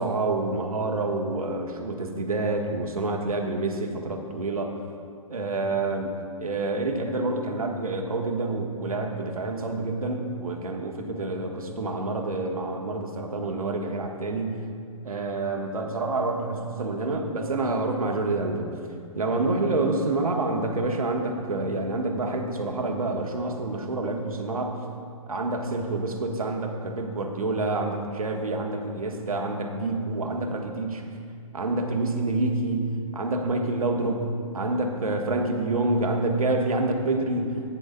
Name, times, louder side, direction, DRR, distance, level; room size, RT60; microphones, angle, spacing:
voice 1, 0.0-4.7 5.3-14.6 15.0-18.7 19.1-24.8 25.3-31.0 31.5-37.6, right 2 dB, 80° right, 3 dB, 1.2 m, -27 dB
15.0 x 9.9 x 2.2 m, 2.3 s
figure-of-eight pair, 125°, 18 cm